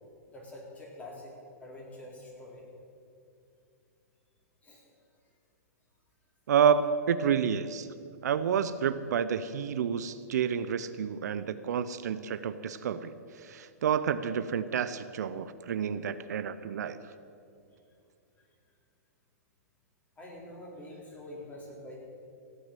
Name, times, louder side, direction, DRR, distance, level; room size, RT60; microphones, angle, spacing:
voice 1, 0.3-1.3 1.6-2.6 4.6-4.9 20.2-22.0, left 1 dB, 15° left, -3 dB, 3.9 m, -46 dB
voice 2, 6.5-7.9 8.2-13.1 13.4-17.0, right 7 dB, 75° right, 13 dB, 0.6 m, -29 dB
16.5 x 6.5 x 9.0 m, 2.5 s
hypercardioid pair, 130°, 9 cm